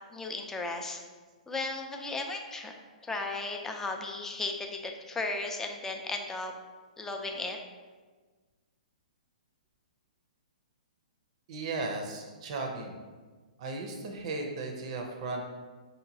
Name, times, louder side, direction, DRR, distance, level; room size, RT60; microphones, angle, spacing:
voice 1, 0.1-1.0 1.5-2.7 3.0-6.5 7.0-7.6, left 3 dB, 10° left, 3 dB, 0.4 m, -35 dB
voice 2, 11.5-13.0 13.6-15.4, right 3 dB, 50° right, 3 dB, 0.6 m, -36 dB
5.3 x 2.9 x 2.7 m, 1.4 s
hypercardioid pair, 120°, 4 cm